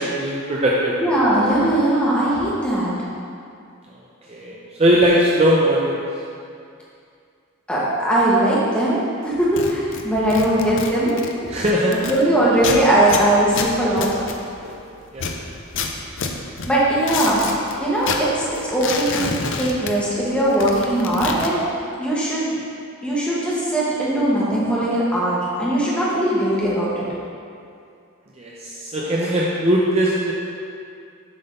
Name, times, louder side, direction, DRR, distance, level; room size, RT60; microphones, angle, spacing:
voice 1, 0.0-1.0 4.3-6.0 11.5-12.0 13.0-13.1 14.6-14.8 15.1-15.3 28.4-30.3, equal, 30° right, -4 dB, 0.5 m, -20 dB
voice 2, 1.0-2.9 7.7-11.1 12.1-14.1 16.7-17.4 17.8-19.2 19.6-21.6 22.0-22.6 23.0-27.0, right 1 dB, 5° left, -8 dB, 1.3 m, -20 dB
sound 1, 9.4-12.2 12.6-14.8 15.1-17.7 18.0-20.3 20.5-21.5, left 4 dB, 60° left, 0.5 m, -28 dB
7.5 x 3.9 x 5.4 m, 2.4 s
head